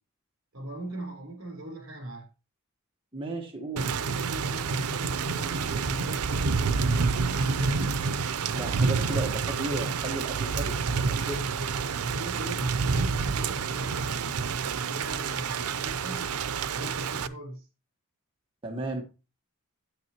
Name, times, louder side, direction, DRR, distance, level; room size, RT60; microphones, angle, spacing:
voice 1, 0.5-2.3 4.0-8.0 11.9-16.3 16.7-17.7, right 1 dB, 60° right, 3.8 m, -40 dB
voice 2, 3.1-4.0 8.5-11.6 18.6-19.0, right 2 dB, 25° right, 1.3 m, -34 dB
Thunder / Rain, 3.8-17.3, right 5 dB, 85° right, 0.6 m, -28 dB
9.3 x 9.3 x 2.9 m
head